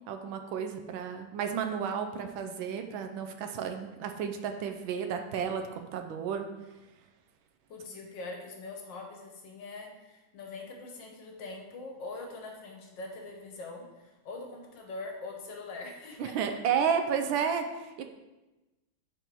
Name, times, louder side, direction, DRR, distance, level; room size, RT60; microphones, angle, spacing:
voice 1, 0.1-6.5 16.2-18.0, right 7 dB, 80° right, 6 dB, 1.3 m, -32 dB
voice 2, 7.7-16.5, left 3 dB, 65° left, 1 dB, 1.5 m, -43 dB
4.5 x 4.5 x 5.2 m, 1.1 s
omnidirectional pair, 2.2 m